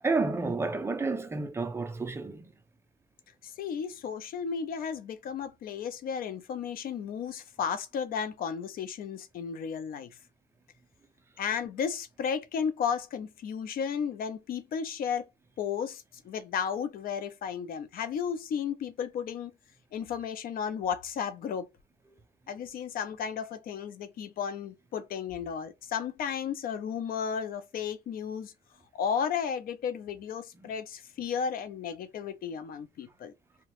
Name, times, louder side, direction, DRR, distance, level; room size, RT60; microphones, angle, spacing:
voice 1, 0.0-2.5, right 3 dB, 15° right, 0.4 m, -30 dB
voice 2, 3.4-10.1 11.4-15.3 15.6-19.5 19.9-21.7 22.5-28.5 28.9-33.3, left 7 dB, 55° left, 0.5 m, -34 dB
2.8 x 2.2 x 2.9 m
cardioid pair, 140°, 18 cm